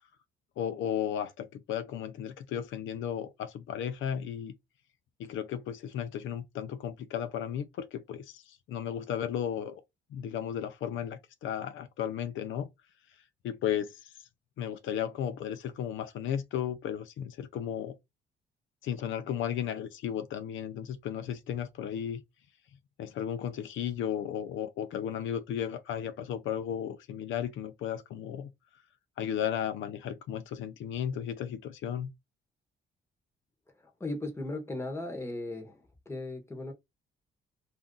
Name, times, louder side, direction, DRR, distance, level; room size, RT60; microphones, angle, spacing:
voice 1, 0.6-4.5 5.2-9.8 10.1-12.7 13.4-14.0 14.6-18.0 18.8-22.2 23.0-28.5 29.2-32.1, left 9 dB, 80° left, 0.6 m, -34 dB
voice 2, 34.0-35.8 36.1-36.7, left 2 dB, 15° left, 1.1 m, -36 dB
2.6 x 2.3 x 3.7 m
cardioid pair, 90°, 20 cm